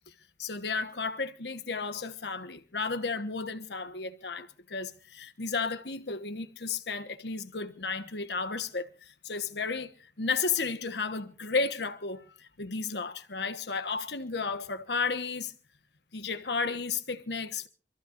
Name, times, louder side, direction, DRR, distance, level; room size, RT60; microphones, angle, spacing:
voice 1, 0.4-9.9 10.2-15.5 16.1-17.7, left 4 dB, 75° left, 1.3 m, -33 dB
26.5 x 14.5 x 2.6 m
head